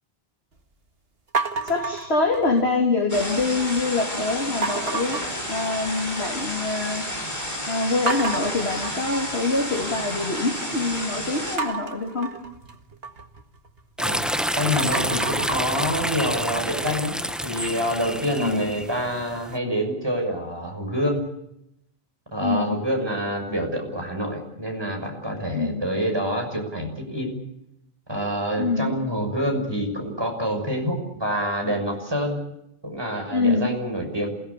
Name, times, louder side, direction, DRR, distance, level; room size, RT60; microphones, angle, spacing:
sound 1, 1.3-2.8 3.2-3.7 4.6-6.1 6.5-7.0 7.4-7.5 8.1-10.2 11.6-14.4 14.8-17.7, right 3 dB, 70° right, 2.1 m, -32 dB
voice 1, 1.6-5.2 5.5-7.0 7.7-12.3 18.4-18.6 22.4-22.7 25.5-25.8 28.6-28.9 33.3-33.7, left 3 dB, 85° left, 0 dB, 3.4 m, -25 dB
sound 2, 3.1-11.6, equal, 45° left, 4.8 m, -31 dB
sound 3, 14.0-19.5, equal, ahead, 0.9 m, -28 dB
voice 2, 14.6-21.2 22.3-27.4 28.1-32.4 32.8-34.3, equal, 25° right, 2 dB, 6.4 m, -27 dB
27.5 x 18.0 x 8.4 m, 0.81 s
omnidirectional pair, 1.1 m